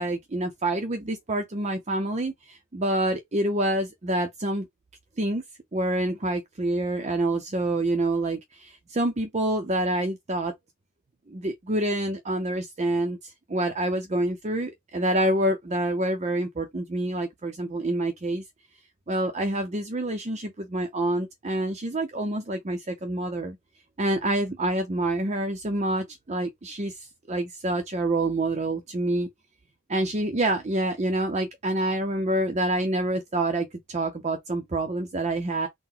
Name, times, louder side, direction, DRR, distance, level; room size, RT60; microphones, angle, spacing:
voice 1, 0.0-4.7 5.2-5.4 5.7-10.5 11.3-18.4 19.1-23.6 24.0-27.0 27.3-29.3 29.9-35.7, right 1 dB, 30° right, 0.6 m, -27 dB
3.9 x 2.1 x 4.3 m
head